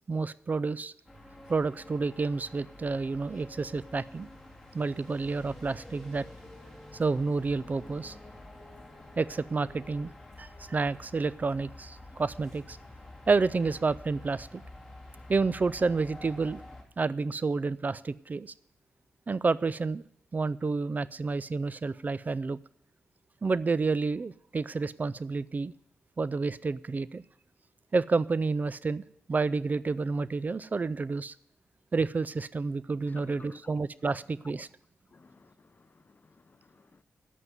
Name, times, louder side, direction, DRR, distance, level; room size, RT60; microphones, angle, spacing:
voice 1, 0.1-0.9 1.5-4.3 4.7-6.3 6.9-8.2 9.2-10.1 10.4-12.8 13.3-14.6 15.3-16.6 17.0-18.5 19.3-20.0 20.3-22.6 23.4-25.7 26.2-27.2 27.9-29.0 29.3-31.3 31.9-34.7, right 4 dB, 40° right, 0.4 m, -29 dB
sound 1, 1.0-16.8, left 1 dB, 5° left, 3.0 m, -49 dB
voice 2, 33.1-33.7 35.1-37.0, left 3 dB, 40° left, 0.6 m, -56 dB
9.2 x 8.1 x 7.9 m
cardioid pair, 50°, 4 cm